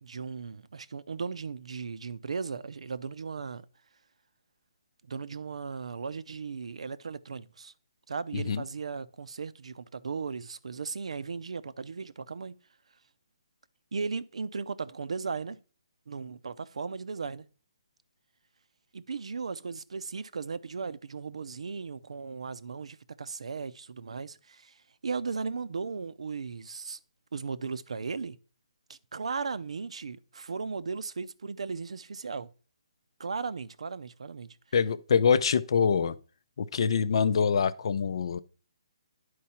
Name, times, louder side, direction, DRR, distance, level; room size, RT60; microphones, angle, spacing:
voice 1, 0.0-3.6 5.1-7.7 8.1-12.6 13.9-15.6 16.1-17.5 18.9-27.0 27.3-28.4 28.9-32.5 33.2-34.6, right 5 dB, 75° right, 0.6 m, -36 dB
voice 2, 8.3-8.6 34.7-36.2 36.6-38.4, left 6 dB, 55° left, 0.5 m, -25 dB
10.5 x 4.7 x 4.3 m
hypercardioid pair, 160°, 3 cm